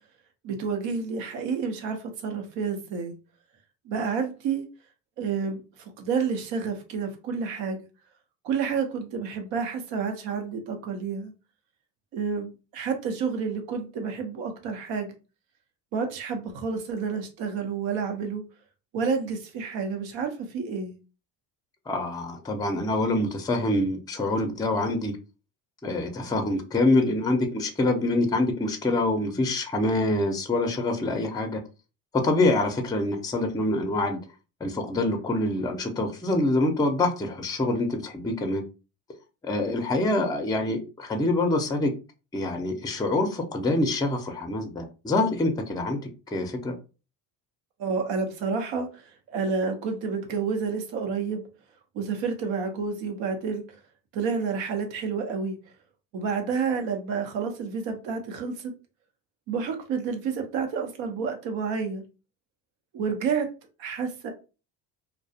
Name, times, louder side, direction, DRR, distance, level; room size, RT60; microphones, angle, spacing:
voice 1, 0.4-3.1 3.9-4.6 5.2-5.6 6.0-7.8 8.4-11.3 12.1-15.1 15.9-18.4 18.9-20.9 47.8-49.0 49.3-51.4 51.9-53.6 54.1-55.6 56.1-58.5 59.5-62.0 62.9-63.5 63.8-64.3, right 5 dB, 75° right, 0.8 m, -29 dB
voice 2, 21.9-25.1 25.8-31.6 32.2-34.2 34.6-38.6 39.5-41.9 42.3-46.0 46.3-46.7, left 2 dB, 10° left, 0.5 m, -25 dB
2.3 x 2.2 x 2.7 m
supercardioid pair, 75°, 45 cm